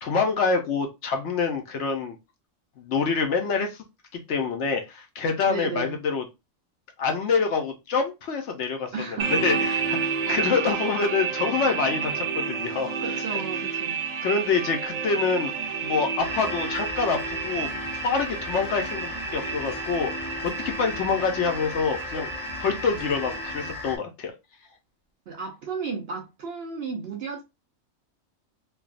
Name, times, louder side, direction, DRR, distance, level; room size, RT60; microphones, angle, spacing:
voice 1, 0.0-2.2 2.8-3.8 4.1-6.2 7.0-13.4 14.2-15.5 15.8-17.7 18.0-22.3 22.6-24.3, left 5 dB, 65° left, 0.9 m, -26 dB
voice 2, 5.5-6.0 8.9-9.3 10.3-10.4 13.0-14.0 25.3-27.4, right 5 dB, 60° right, 0.7 m, -33 dB
sound 1, 9.2-23.7, right 6 dB, 75° right, 1.2 m, -31 dB
sound 2, 16.2-24.0, left 3 dB, 35° left, 0.6 m, -36 dB
3.3 x 2.2 x 2.4 m
omnidirectional pair, 1.4 m